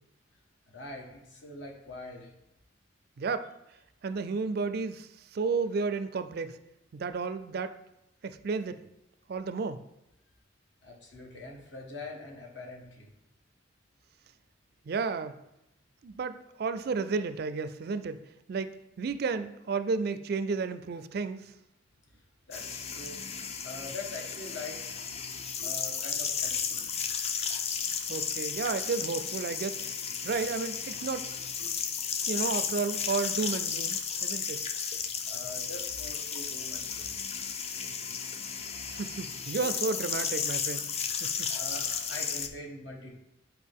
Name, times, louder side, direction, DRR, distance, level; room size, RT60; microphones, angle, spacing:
voice 1, 0.7-2.3 10.8-13.1 22.5-23.2 23.6-25.1 25.6-26.8 35.2-37.1 41.5-43.1, left 2 dB, 70° left, 0 dB, 1.4 m, -43 dB
voice 2, 3.2-3.5 4.0-6.6 6.9-7.7 8.2-8.8 9.3-9.8 14.9-15.4 16.0-18.2 18.5-18.7 19.0-21.5 28.1-30.0 30.2-31.3 32.3-34.6 38.9-40.9 41.2-41.5, right 4 dB, 50° right, 11 dB, 0.4 m, -32 dB
sound 1, 22.5-42.5, left 6 dB, 30° left, 0.4 m, -34 dB
8.4 x 4.6 x 3.6 m, 0.87 s
head